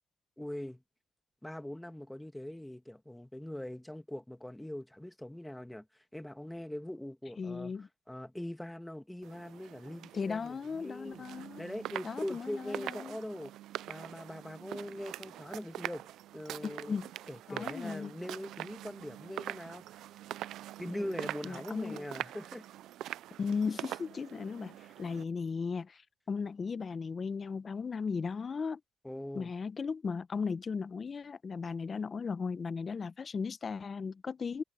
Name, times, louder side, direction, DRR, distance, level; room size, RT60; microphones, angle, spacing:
voice 1, 0.4-0.8 1.4-11.3 11.6-13.5 13.9-16.1 16.3-17.0 17.3-20.1 20.8-22.7 29.0-29.5, left 1 dB, 5° left, 2.0 m, -42 dB
voice 2, 7.4-7.9 10.1-11.6 12.0-13.2 16.6-17.1 17.5-18.1 21.4-22.0 23.4-26.0 26.3-28.8 29.3-34.6, left 5 dB, 40° left, 0.8 m, -36 dB
sound 1, 9.2-25.2, right 13 dB, 80° right, 0.3 m, -44 dB
cardioid pair, 90°, 0 cm